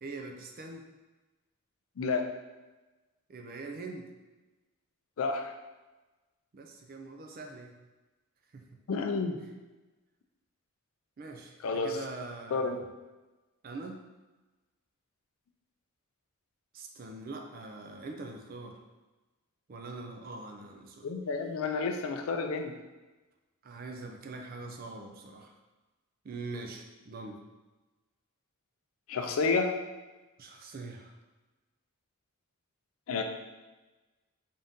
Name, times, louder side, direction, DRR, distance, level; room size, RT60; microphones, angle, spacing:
voice 1, 0.0-0.9 3.3-4.1 6.5-7.8 8.5-8.8 11.2-12.8 13.6-14.0 16.7-18.8 19.7-21.1 23.6-25.6 26.2-27.4 30.4-31.2, right 3 dB, 40° right, 3 dB, 0.4 m, -43 dB
voice 2, 2.0-2.3 5.2-5.5 8.9-9.4 11.6-12.0 12.5-12.8 21.0-22.7 29.1-29.7 33.1-33.2, left 4 dB, 70° left, 5 dB, 0.4 m, -30 dB
3.7 x 2.7 x 3.5 m, 1.2 s
head